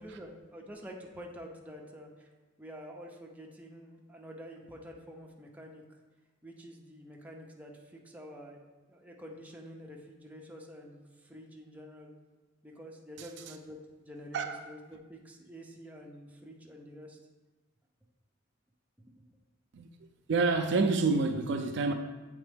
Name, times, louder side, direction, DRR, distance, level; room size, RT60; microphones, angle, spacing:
voice 1, 0.0-2.3 2.6-6.0 6.4-8.6 8.9-12.1 12.6-17.2 19.1-19.2, equal, 10° right, 0.6 m, -48 dB
voice 2, 20.3-21.9, right 3 dB, 65° right, 0.4 m, -27 dB
7.6 x 3.5 x 3.5 m
head